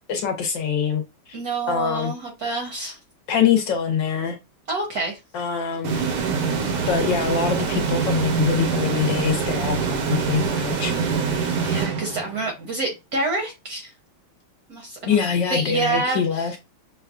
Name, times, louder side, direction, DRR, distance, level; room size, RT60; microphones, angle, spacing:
voice 1, 0.1-1.4 1.7-2.1 3.3-4.4 5.3-6.0 6.8-10.9 15.0-16.6, left 7 dB, 70° left, 1.3 m, -24 dB
voice 2, 1.3-3.0 4.7-5.2 11.6-13.9 14.7-15.2 15.5-16.4, right 3 dB, 60° right, 1.1 m, -27 dB
sound 1, 5.8-12.6, right 6 dB, 80° right, 1.6 m, -24 dB
6.4 x 2.2 x 2.3 m
omnidirectional pair, 2.4 m